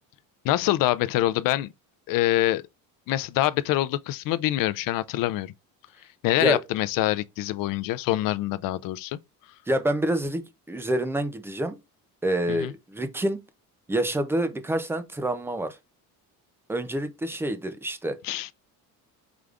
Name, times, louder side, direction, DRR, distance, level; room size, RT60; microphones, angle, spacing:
voice 1, 0.4-1.7 2.1-2.6 3.1-5.5 6.2-9.2 12.5-12.7 18.2-18.5, left 15 dB, 65° left, 0.5 m, -25 dB
voice 2, 9.7-11.8 12.2-13.4 13.9-15.8 16.7-18.2, right 1 dB, 5° right, 0.4 m, -27 dB
5.0 x 3.4 x 2.4 m
cardioid pair, 165°, 37 cm